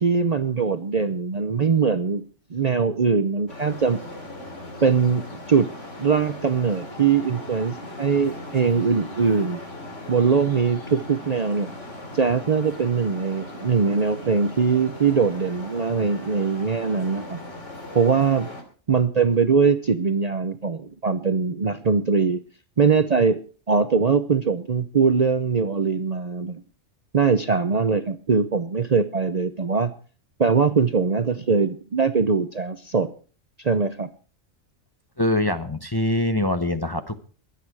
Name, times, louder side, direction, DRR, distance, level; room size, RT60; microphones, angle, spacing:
voice 1, 0.0-2.2 2.5-4.0 4.8-5.7 6.0-9.6 10.1-11.7 12.1-17.4 17.9-18.5 18.9-22.4 22.8-23.4 23.7-26.6 27.1-29.9 30.4-33.1 33.6-34.1, right 5 dB, 40° right, 10 dB, 0.7 m, -21 dB
Traffic noise roadway noise, 3.5-18.6, left 1 dB, 70° left, 3.2 m, -39 dB
voice 2, 35.2-37.3, left 1 dB, 20° left, 8 dB, 0.8 m, -24 dB
22.0 x 8.5 x 4.7 m, 0.39 s
omnidirectional pair, 1.3 m